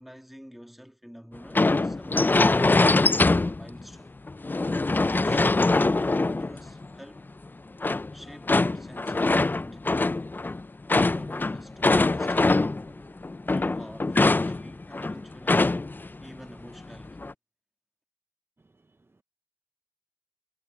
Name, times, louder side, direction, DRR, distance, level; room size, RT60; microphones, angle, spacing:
voice 1, 0.0-3.1 3.5-4.2 5.1-7.3 8.1-10.2 11.0-15.8 16.2-17.2, equal, ahead, 1.6 m, -48 dB
sound 1, 1.5-3.8 4.3-6.9 7.8-12.9 13.2-16.1 16.3-16.4 16.9-17.3, left 2 dB, 30° left, 0.3 m, -23 dB
voice 2, 18.6-19.2, right 3 dB, 35° right, 0.5 m, -65 dB
wide cardioid pair, 60°, 7 cm